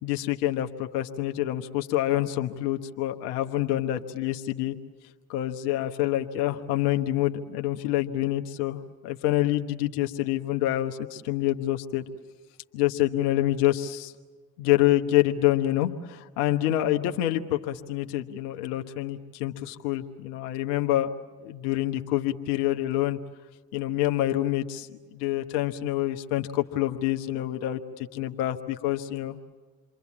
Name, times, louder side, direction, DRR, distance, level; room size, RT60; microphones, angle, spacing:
voice 1, 0.0-4.8 5.3-12.0 12.7-14.1 14.6-21.1 21.4-23.2 23.7-29.4, left 14 dB, 85° left, 5 dB, 1.3 m, -27 dB
29.0 x 23.5 x 8.6 m, 1.4 s
hypercardioid pair, 50°, 44 cm